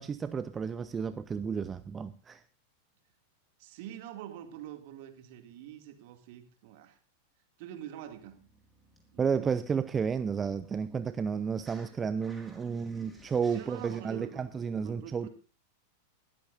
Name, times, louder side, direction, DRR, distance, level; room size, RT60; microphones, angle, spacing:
voice 1, 0.0-2.4 9.2-15.3, right 6 dB, 20° right, 0.6 m, -32 dB
voice 2, 3.6-7.0 7.6-8.4 9.1-9.5 13.5-15.3, right 11 dB, 50° right, 2.4 m, -45 dB
sound 1, 8.1-11.9 12.2-14.0, right 1 dB, 5° right, 4.1 m, -57 dB
20.0 x 13.5 x 2.6 m
figure-of-eight pair, 90°, 0 cm